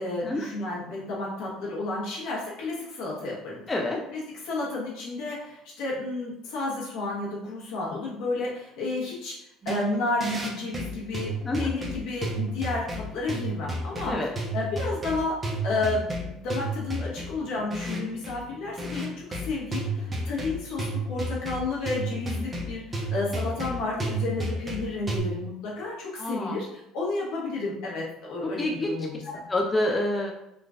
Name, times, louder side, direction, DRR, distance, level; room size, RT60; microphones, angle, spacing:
voice 1, 0.0-3.6 4.1-9.3 9.6-15.3 15.6-29.4, left 2 dB, 75° left, -5 dB, 1.3 m, -31 dB
voice 2, 3.7-4.0 11.4-11.7 14.1-14.3 26.2-26.6 28.6-29.0 29.3-30.3, left 1 dB, 20° left, 1 dB, 0.4 m, -27 dB
sound 1, 9.6-25.2, right 1 dB, 20° right, 0.7 m, -32 dB
3.7 x 2.4 x 2.4 m, 0.85 s
supercardioid pair, 105°, 0 cm